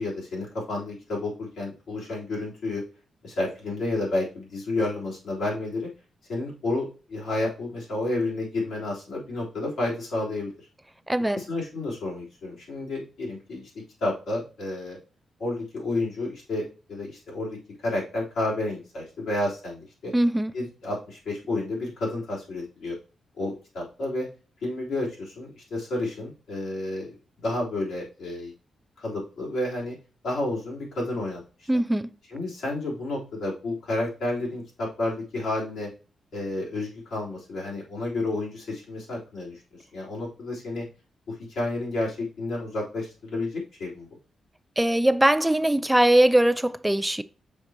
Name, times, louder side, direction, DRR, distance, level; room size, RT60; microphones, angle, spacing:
voice 1, 0.0-2.8 3.2-5.9 6.3-10.7 11.3-15.0 15.4-20.1 20.5-23.0 23.4-24.3 24.6-28.5 29.0-29.9 30.2-31.7 32.3-35.9 36.3-39.6 39.9-40.9 41.3-44.1, left 2 dB, 90° left, 3.4 m, -31 dB
voice 2, 11.1-11.4 20.1-20.5 31.7-32.1 44.8-47.2, right 1 dB, 5° right, 0.3 m, -21 dB
6.5 x 5.0 x 2.9 m
cardioid pair, 115°, 0 cm